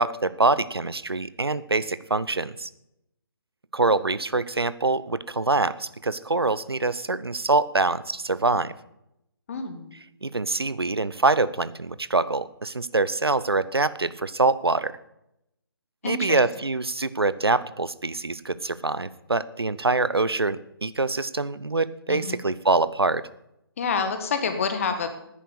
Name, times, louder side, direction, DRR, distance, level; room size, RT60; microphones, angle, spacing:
voice 1, 0.0-2.7 3.7-8.7 10.2-15.0 16.0-23.2, right 3 dB, 75° right, 17 dB, 0.7 m, -24 dB
voice 2, 9.5-9.9 16.0-16.4 22.1-22.4 23.8-25.1, left 5 dB, 35° left, 8 dB, 1.6 m, -27 dB
10.0 x 9.5 x 7.1 m, 0.82 s
figure-of-eight pair, 145°, 13 cm